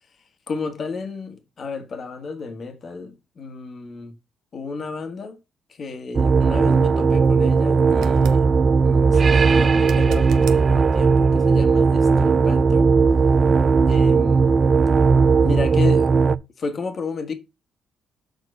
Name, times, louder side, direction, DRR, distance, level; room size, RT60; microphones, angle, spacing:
voice 1, 0.5-4.1 4.5-5.4 5.8-8.4 8.8-12.9 13.9-14.6 15.4-16.1 16.6-17.3, left 4 dB, 50° left, 1.7 m, -32 dB
sound 1, 6.1-16.3, right 5 dB, 40° right, 0.4 m, -17 dB
sound 2, 7.9-8.4 9.8-10.6 13.6-13.7, right 8 dB, 85° right, 0.9 m, -38 dB
6.7 x 4.3 x 5.4 m
cardioid pair, 90°, 0 cm